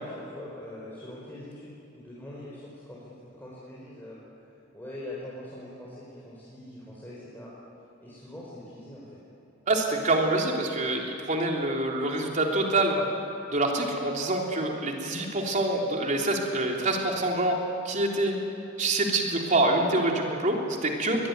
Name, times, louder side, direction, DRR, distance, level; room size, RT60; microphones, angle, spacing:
voice 1, 0.0-4.2 4.7-7.5 8.0-9.2, left 1 dB, 10° left, -6 dB, 4.9 m, -43 dB
voice 2, 9.7-13.0 13.5-17.6 17.9-18.4 18.8-21.3, right 2 dB, 40° right, 0 dB, 3.5 m, -26 dB
22.0 x 21.0 x 9.5 m, 2.8 s
head